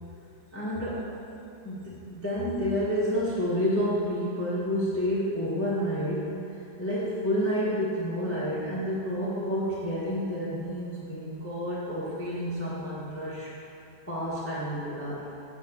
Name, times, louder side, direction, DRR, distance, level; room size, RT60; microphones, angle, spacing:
voice 1, 0.5-1.1 1.6-6.2 6.5-13.5 14.1-15.2, equal, 15° left, -9 dB, 0.4 m, -29 dB
9.4 x 4.2 x 6.6 m, 2.8 s
omnidirectional pair, 4.0 m